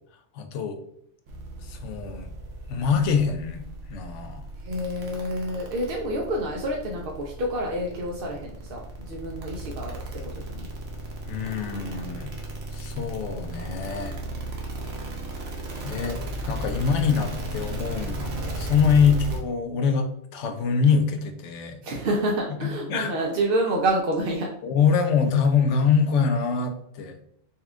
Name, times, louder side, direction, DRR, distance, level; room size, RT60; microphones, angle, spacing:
voice 1, 0.3-0.8 1.6-2.3 2.7-3.6 3.9-4.4 11.3-12.3 12.7-14.2 15.8-21.8 22.6-23.1 24.6-27.2, left 6 dB, 85° left, 7 dB, 0.9 m, -24 dB
sound 1, 1.3-19.4, right 2 dB, 85° right, 1.2 m, -35 dB
voice 2, 4.6-10.7 21.8-24.5, right 1 dB, 60° right, -1 dB, 0.7 m, -28 dB
4.2 x 2.3 x 3.5 m, 0.68 s
omnidirectional pair, 1.2 m